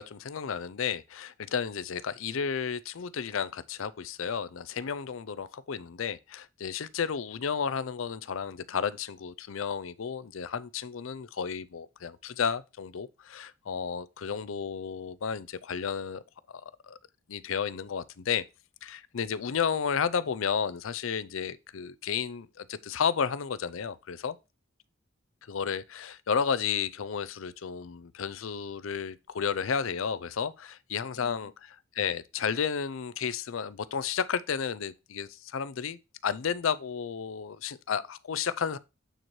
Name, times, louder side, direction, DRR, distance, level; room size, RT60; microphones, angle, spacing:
voice 1, 0.0-16.2 16.5-16.6 16.9-17.0 17.3-18.4 18.8-24.4 25.5-31.5 32.0-38.8, left 6 dB, 70° left, 0.5 m, -32 dB
9.0 x 4.4 x 3.1 m
head